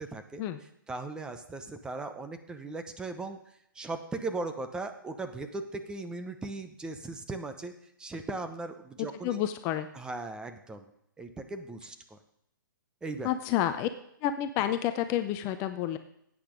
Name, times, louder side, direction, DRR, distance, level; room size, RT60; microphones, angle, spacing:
voice 1, 0.0-3.4 3.7-7.7 8.0-9.4 9.9-10.9 11.2-12.2 13.0-13.3, right 3 dB, 5° right, 7 dB, 0.8 m, -38 dB
voice 2, 9.2-9.9 13.2-13.9 14.2-16.0, left 11 dB, 25° left, 9 dB, 0.6 m, -29 dB
13.0 x 8.6 x 5.1 m, 0.75 s
hypercardioid pair, 140°, 11 cm